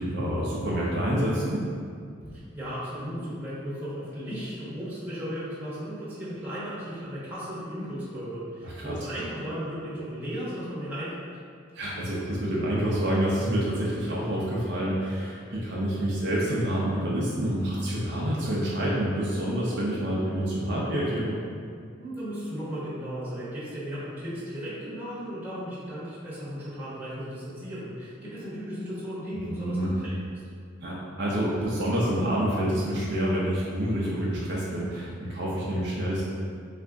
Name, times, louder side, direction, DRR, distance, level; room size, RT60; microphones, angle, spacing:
voice 1, 0.0-1.6 8.6-8.9 11.7-21.4 29.5-29.9 30.8-36.2, right 1 dB, 55° right, -6 dB, 0.6 m, -27 dB
voice 2, 2.2-11.2 22.0-30.2, equal, 10° right, -11 dB, 1.1 m, -35 dB
4.1 x 2.5 x 3.5 m, 2.2 s
head